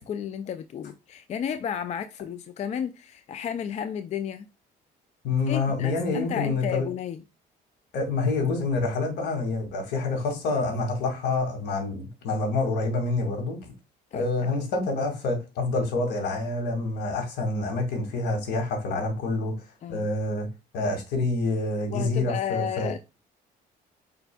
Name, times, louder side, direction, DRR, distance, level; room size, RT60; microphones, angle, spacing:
voice 1, 0.0-4.5 5.5-7.2 14.1-14.5 19.8-20.1 21.9-23.0, left 8 dB, 40° left, 0.4 m, -32 dB
voice 2, 5.2-6.9 7.9-13.7 14.1-19.5 19.9-20.5 20.7-22.9, left 3 dB, 80° left, 2.1 m, -27 dB
5.1 x 4.3 x 2.2 m
cardioid pair, 110°, 17 cm